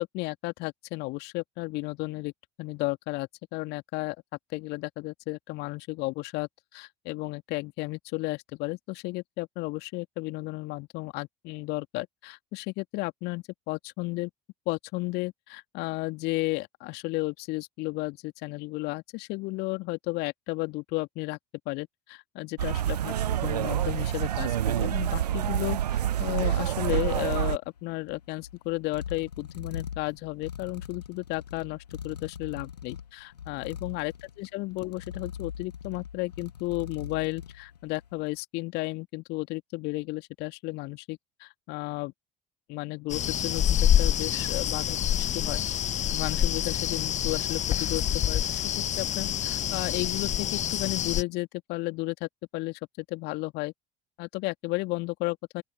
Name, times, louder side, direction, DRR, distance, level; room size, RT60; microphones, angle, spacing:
voice 1, 0.0-2.3 2.6-4.2 4.5-14.3 14.7-21.4 21.7-23.1 23.4-42.1 42.7-45.6 46.1-48.6 49.0-53.7 54.2-55.6, left 22 dB, 55° left, 2.6 m, -33 dB
sound 1, 22.6-27.6, right 11 dB, 75° right, 0.9 m, -27 dB
sound 2, 27.6-38.2, left 8 dB, 75° left, 1.9 m, -42 dB
sound 3, 43.1-51.2, left 10 dB, 35° left, 1.0 m, -27 dB
open air
figure-of-eight pair, 65°, 21 cm